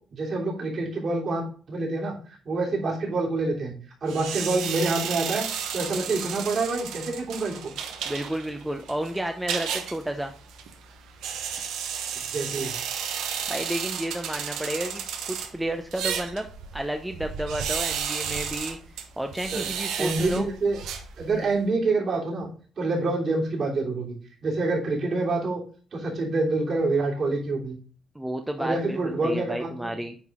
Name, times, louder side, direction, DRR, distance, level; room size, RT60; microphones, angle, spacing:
voice 1, 0.1-2.1 2.4-3.8 4.0-7.7 12.3-12.7 19.5-19.7 20.0-20.8 21.2-22.5 22.8-24.2 24.4-25.6 25.9-27.8 28.6-30.0, right 3 dB, 50° right, -3 dB, 3.2 m, -27 dB
sound 1, 4.1-21.6, right 7 dB, 85° right, 1.0 m, -33 dB
voice 2, 8.0-10.3 13.5-16.5 16.7-18.8 19.2-20.5 21.3-21.5 28.1-30.1, right 1 dB, 5° right, 5 dB, 0.7 m, -31 dB
9.4 x 4.0 x 3.7 m, 0.41 s
cardioid pair, 90°, 0 cm